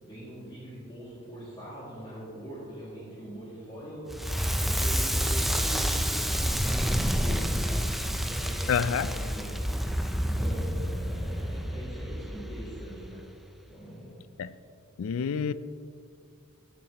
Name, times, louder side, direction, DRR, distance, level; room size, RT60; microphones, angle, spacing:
voice 1, 0.0-13.2 13.7-14.2, equal, 25° left, 2.2 m, -42 dB
Crackle, 4.1-13.1, equal, ahead, 0.4 m, -29 dB
voice 2, 8.7-9.1 14.4-14.5 15.0-15.5, left 7 dB, 75° left, 0.4 m, -27 dB
16.0 x 7.1 x 2.9 m
head